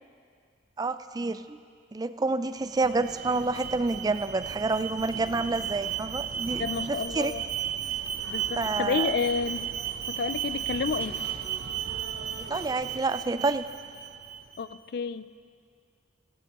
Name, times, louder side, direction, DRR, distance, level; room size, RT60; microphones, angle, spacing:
voice 1, 0.8-1.6 1.9-7.3 8.6-9.2 12.4-13.6, right 3 dB, 20° right, 12 dB, 0.3 m, -28 dB
Alarm, 2.6-14.6, right 9 dB, 60° right, 0.7 m, -35 dB
sound 1, 5.0-8.4 10.7-12.7, right 1 dB, 45° left, 4.0 m, -50 dB
sound 2, 5.2-13.0, equal, 10° left, 1.3 m, -51 dB
voice 2, 6.6-7.4 8.3-9.7 10.1-11.2 14.6-15.3, left 5 dB, 60° left, 14 dB, 0.4 m, -30 dB
17.5 x 17.0 x 3.0 m, 2.2 s
head